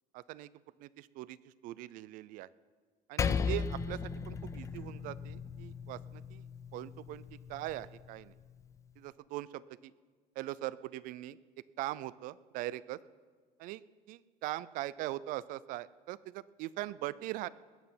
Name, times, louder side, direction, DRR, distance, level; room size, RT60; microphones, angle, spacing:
voice 1, 0.1-0.5 0.8-1.4 1.6-2.5 3.1-4.0 4.3-6.4 6.7-7.2 7.5-8.3 9.0-9.9 10.4-11.4 11.8-13.0 13.6-13.8 14.1-17.5, right 16 dB, 60° right, 19 dB, 0.4 m, -41 dB
Percussion, 3.2-8.0, left 5 dB, 20° left, 0.4 m, -36 dB
20.0 x 9.7 x 5.7 m, 1.5 s
cardioid pair, 180°, 16 cm